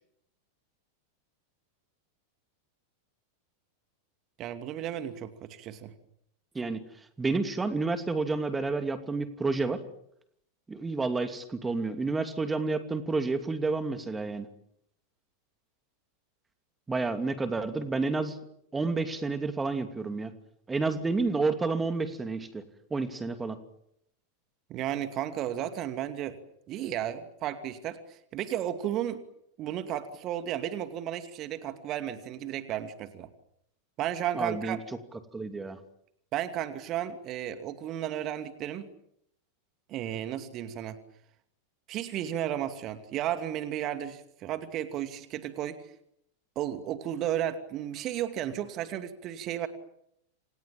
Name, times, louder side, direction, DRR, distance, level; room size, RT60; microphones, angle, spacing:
voice 1, 4.4-5.9 24.7-26.4 26.7-29.2 29.6-33.3 34.0-34.8 36.3-38.9 39.9-41.0 41.9-45.8 46.6-49.7, right 11 dB, 35° right, 9 dB, 2.5 m, -33 dB
voice 2, 7.2-9.8 10.7-14.5 16.9-18.4 18.7-20.3 20.7-22.6 22.9-23.6 34.4-34.8 35.3-35.8, right 3 dB, 10° right, 9 dB, 2.7 m, -30 dB
29.0 x 28.0 x 7.4 m, 0.75 s
figure-of-eight pair, 90°, 0 cm